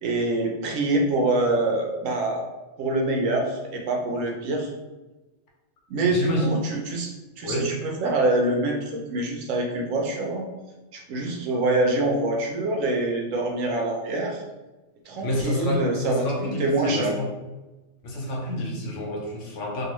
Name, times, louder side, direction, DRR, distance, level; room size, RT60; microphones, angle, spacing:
voice 1, 0.0-2.4 2.8-4.7 5.9-10.5 10.9-14.4 15.1-16.3 16.6-17.1, right 2 dB, 85° right, 1 dB, 1.0 m, -25 dB
voice 2, 6.1-6.5 7.4-7.7 15.2-17.3 18.0-19.8, equal, 70° left, -1 dB, 1.0 m, -28 dB
2.9 x 2.3 x 3.0 m, 1.1 s
omnidirectional pair, 1.3 m